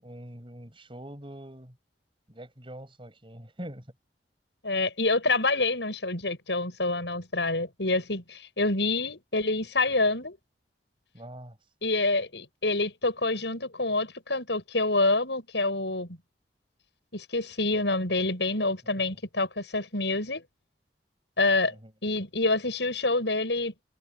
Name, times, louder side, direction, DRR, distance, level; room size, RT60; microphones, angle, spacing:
voice 1, 0.0-1.7 2.3-3.8 11.1-11.6 21.7-21.9, right 1 dB, 30° right, 7.1 m, -43 dB
voice 2, 4.6-10.4 11.8-16.1 17.1-20.4 21.4-21.7 22.0-23.8, left 2 dB, 80° left, 7.4 m, -27 dB
head